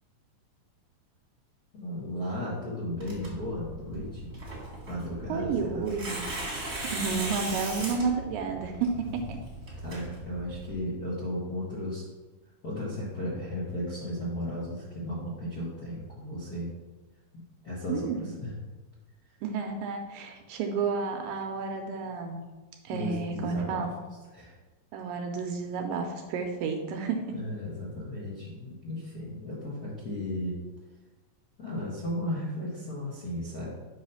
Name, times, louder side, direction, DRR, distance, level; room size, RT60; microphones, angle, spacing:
voice 1, 1.7-4.4 4.8-5.9 9.0-9.5 9.8-12.1 12.6-16.7 17.3-18.5 22.9-23.9 24.3-24.5 27.3-30.6 31.6-33.8, left 1 dB, 50° left, -7 dB, 1.1 m, -35 dB
Tearing, 3.0-10.8, right 2 dB, 30° right, 1.3 m, -38 dB
voice 2, 5.3-6.3 6.9-9.4 17.9-18.3 19.4-22.4 22.8-23.9 24.9-27.4, right 5 dB, 80° right, 4 dB, 2.2 m, -31 dB
8.2 x 3.2 x 5.6 m, 1.2 s
omnidirectional pair, 4.2 m